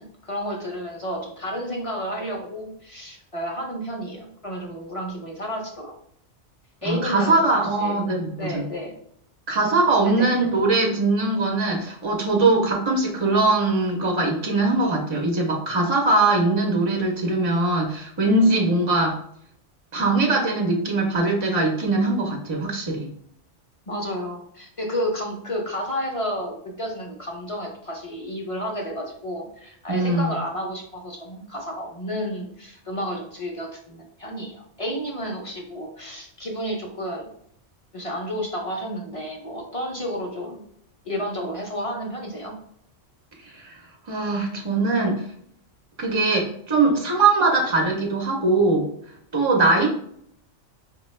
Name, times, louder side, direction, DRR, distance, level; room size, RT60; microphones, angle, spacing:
voice 1, 0.0-5.9 6.8-7.4 7.8-8.1 8.4-8.9 10.0-10.3 23.9-37.3 37.9-40.6 41.0-42.5, equal, 40° left, 0 dB, 0.5 m, -31 dB
voice 2, 6.8-8.7 9.5-19.2 19.9-23.1 29.9-30.3 43.4-43.8 44.1-45.2 46.0-48.9 49.3-50.0, right 2 dB, 50° right, 0 dB, 0.3 m, -21 dB
4.8 x 2.2 x 3.1 m, 0.68 s
omnidirectional pair, 1.2 m